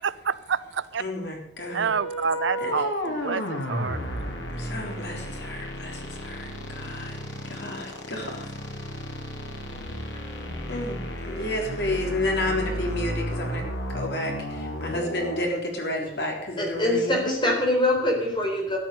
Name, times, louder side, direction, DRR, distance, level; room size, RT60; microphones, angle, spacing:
voice 1, 0.0-1.0 1.7-4.0, right 6 dB, 85° right, 17 dB, 0.6 m, -28 dB
voice 2, 1.0-1.9 2.6-2.7 4.5-7.2 7.4-8.5 10.7-13.7 13.9-17.5, left 1 dB, 65° left, 1 dB, 3.7 m, -31 dB
sound 1, 1.6-15.5, equal, 85° left, 3.0 m, -33 dB
voice 3, 16.6-18.8, left 1 dB, 25° left, 0 dB, 4.2 m, -24 dB
13.0 x 10.5 x 6.5 m, 0.76 s
head